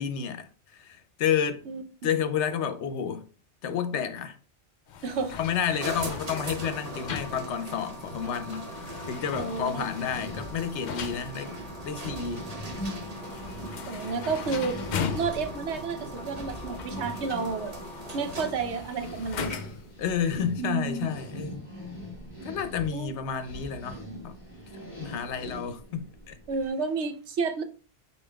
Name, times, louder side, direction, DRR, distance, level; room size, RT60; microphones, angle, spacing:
voice 1, 0.0-1.7 2.0-3.3 3.6-4.4 5.4-8.7 9.1-12.4 20.0-21.6 22.4-24.4 25.0-26.4, left 8 dB, 80° left, 0.9 m, -30 dB
sound 1, 4.9-19.9, left 7 dB, 60° left, 0.5 m, -40 dB
voice 2, 5.0-5.3 9.3-9.8 13.9-14.8 15.1-17.7 18.1-19.6 20.6-21.1 22.9-23.2 26.5-27.6, right 5 dB, 80° right, 1.0 m, -31 dB
sound 2, 5.8-18.7, right 1 dB, 35° right, 0.9 m, -40 dB
sound 3, 9.7-26.7, equal, 40° left, 2.1 m, -42 dB
5.2 x 4.4 x 2.3 m
omnidirectional pair, 1.2 m